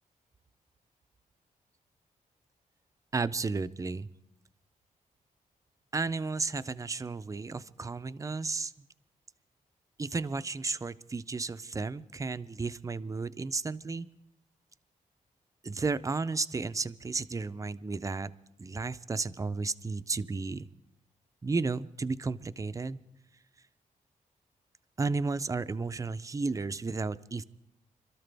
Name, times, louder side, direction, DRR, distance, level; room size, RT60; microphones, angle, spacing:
voice 1, 3.1-4.1 5.9-8.9 10.0-14.1 15.6-18.3 18.6-20.6 21.4-23.0 25.0-27.4, right 4 dB, 20° right, 13 dB, 0.5 m, -33 dB
26.5 x 13.0 x 3.4 m, 0.81 s
wide cardioid pair, 110°, 15 cm